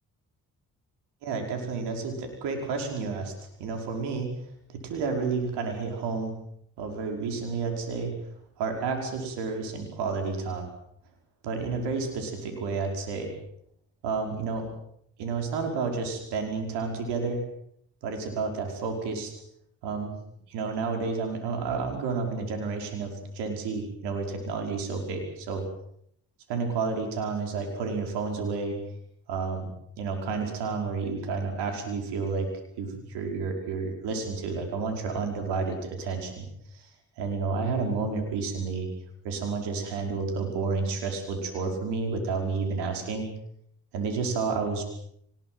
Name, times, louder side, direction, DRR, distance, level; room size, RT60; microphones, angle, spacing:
voice 1, 1.2-3.3 3.6-4.3 4.7-6.3 6.8-8.1 8.6-10.7 11.4-13.3 14.0-14.7 15.2-17.4 18.0-19.3 19.8-20.1 20.5-25.7 26.5-28.8 29.3-29.7 30.0-32.5 32.8-36.5 36.7-36.8 37.2-38.9 39.2-43.3 43.9-44.8, right 4 dB, 90° right, 3 dB, 5.4 m, -30 dB
24.0 x 21.0 x 7.9 m, 0.70 s
supercardioid pair, 55°, 39 cm